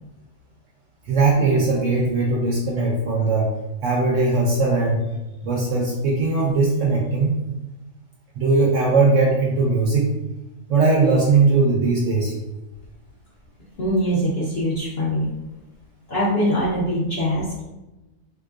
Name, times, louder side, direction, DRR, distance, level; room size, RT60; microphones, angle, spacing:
voice 1, 1.0-3.5 3.8-5.0 5.4-7.3 8.4-10.1 10.7-12.3, right 3 dB, 70° right, -2 dB, 0.7 m, -19 dB
voice 2, 13.8-15.3 16.1-17.6, equal, 55° left, -6 dB, 0.7 m, -22 dB
3.5 x 2.9 x 2.4 m, 1.0 s
omnidirectional pair, 1.7 m